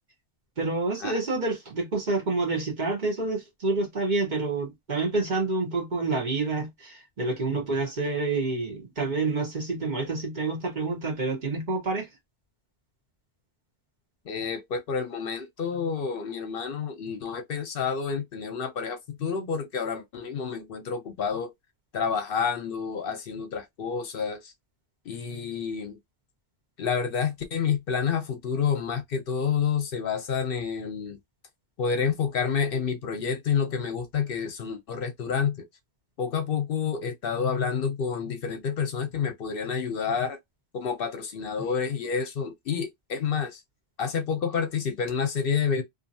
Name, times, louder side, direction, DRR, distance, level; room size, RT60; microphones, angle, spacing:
voice 1, 0.6-12.1, right 3 dB, 45° right, 1.1 m, -28 dB
voice 2, 14.3-21.5 21.9-24.5 25.1-26.0 26.8-31.2 31.8-35.6 36.2-40.4 40.7-43.6 44.0-45.8, left 6 dB, 65° left, 0.7 m, -29 dB
2.7 x 2.5 x 2.6 m
omnidirectional pair, 1.1 m